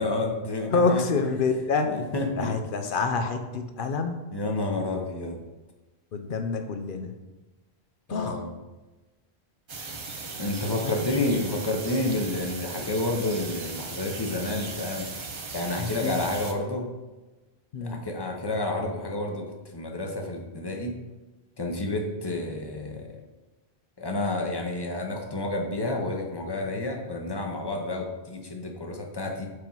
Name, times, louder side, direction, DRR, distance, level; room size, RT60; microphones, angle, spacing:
voice 1, 0.0-1.1 1.8-2.5 4.3-5.4 8.1-8.5 10.4-15.1 15.5-16.9 17.8-21.0 21.6-23.2 24.0-29.5, left 2 dB, 25° left, 1 dB, 0.8 m, -30 dB
voice 2, 0.7-1.9 2.4-4.3 6.1-7.1 8.1-8.4 10.8-11.1 15.8-16.2 17.7-18.0 22.3-22.4, left 4 dB, 55° left, 7 dB, 0.8 m, -27 dB
sound 1, 9.7-16.5, right 4 dB, 35° right, 0.5 m, -38 dB
4.9 x 4.5 x 5.5 m, 1.2 s
omnidirectional pair, 1.1 m